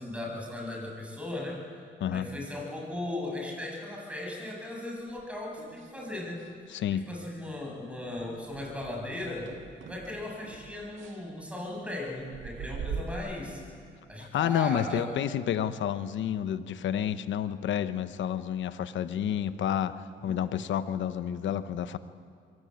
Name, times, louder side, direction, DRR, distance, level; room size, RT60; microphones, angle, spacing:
voice 1, 0.0-1.8 2.1-6.4 6.9-9.5 9.8-13.6 14.1-15.2 20.2-20.4, left 1 dB, 5° right, -1 dB, 8.0 m, -37 dB
sound 1, 5.1-6.5 6.8-7.2 7.5-7.7 8.1-13.2, right 6 dB, 75° right, 1.9 m, -43 dB
voice 2, 6.7-7.1 14.2-20.0 20.2-22.0, left 9 dB, 70° left, 12 dB, 1.0 m, -30 dB
23.0 x 16.5 x 9.0 m, 2.2 s
cardioid pair, 90°, 20 cm